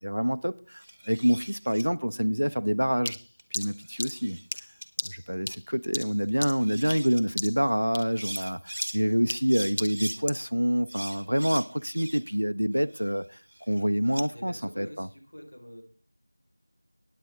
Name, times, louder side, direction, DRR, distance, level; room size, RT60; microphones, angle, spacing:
voice 1, 0.0-3.2 3.5-4.4 5.0-13.4 13.7-15.1, equal, 75° right, 0.6 m, -27 dB
sound 1, 0.8-1.8 3.4-4.5 4.8-4.9 6.3-6.4 6.6-7.2 8.0-9.0 9.5-10.2 10.9-12.4 12.8-14.3, right 1 dB, 40° right, 1.1 m, -41 dB
sound 2, 3.1-7.1 7.4-7.7 7.9-10.5, left 1 dB, 25° left, 0.5 m, -36 dB
voice 2, 14.3-15.8, equal, 65° left, 3.9 m, -45 dB
16.5 x 9.3 x 3.6 m
figure-of-eight pair, 175°, 0 cm